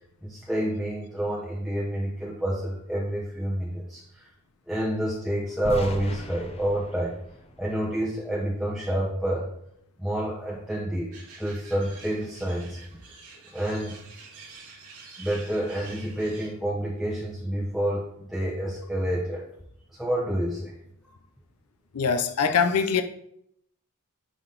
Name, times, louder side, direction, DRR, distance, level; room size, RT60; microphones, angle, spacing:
voice 1, 0.2-4.3 4.7-7.1 7.6-9.5 10.0-11.1 11.4-12.8 13.5-14.0 15.2-19.4 19.9-20.8, right 1 dB, ahead, -5 dB, 0.9 m, -28 dB
sound 1, 5.6-8.6, left 1 dB, 30° left, 0.7 m, -38 dB
sound 2, 11.1-16.5, right 4 dB, 85° right, 3.1 m, -47 dB
voice 2, 21.9-23.0, left 6 dB, 75° left, 8 dB, 0.6 m, -23 dB
9.7 x 3.9 x 3.9 m, 0.73 s
head